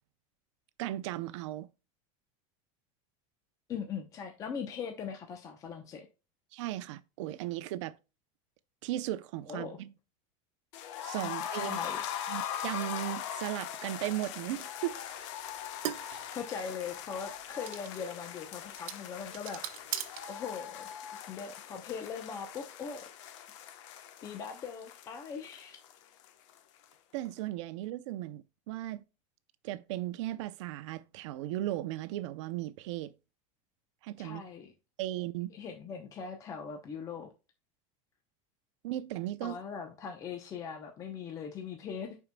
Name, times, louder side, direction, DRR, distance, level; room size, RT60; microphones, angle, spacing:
voice 1, 0.8-1.7 6.5-8.0 8.8-9.9 11.0-11.8 12.3-15.1 27.1-29.0 29.6-33.1 34.0-34.4 35.0-35.5 38.8-39.6, right 14 dB, 60° right, 0.6 m, -36 dB
voice 2, 3.7-6.1 9.5-9.8 11.5-12.0 16.3-19.6 20.3-20.9 21.3-23.1 24.2-25.8 34.2-34.7 35.5-37.3 39.4-42.2, left 6 dB, 20° left, 0.7 m, -40 dB
sound 1, 10.7-26.6 26.8-26.9 27.2-27.3, left 9 dB, 60° left, 1.0 m, -41 dB
sound 2, 14.0-20.9, right 12 dB, 85° right, 1.0 m, -43 dB
11.0 x 4.6 x 2.2 m
supercardioid pair, 180°, 17 cm